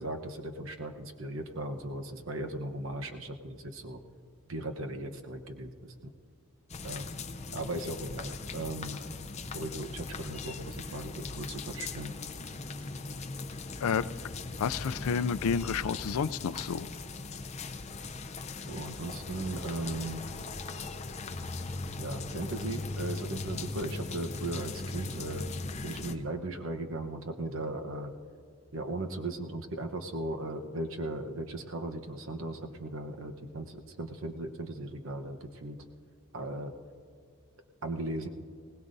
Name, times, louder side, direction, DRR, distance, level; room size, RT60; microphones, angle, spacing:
voice 1, 0.0-4.0 4.5-5.9 6.8-7.2 7.5-9.0 9.5-12.1 18.7-20.2 22.0-25.5 25.8-28.1 28.7-35.8 36.3-36.7 37.8-38.3, right 2 dB, 65° right, 5 dB, 1.0 m, -37 dB
sound 1, 6.7-26.1, left 3 dB, 30° left, 0.6 m, -39 dB
voice 2, 14.5-16.9, left 6 dB, 85° left, 16 dB, 0.4 m, -30 dB
20.5 x 19.0 x 2.7 m, 2.3 s
head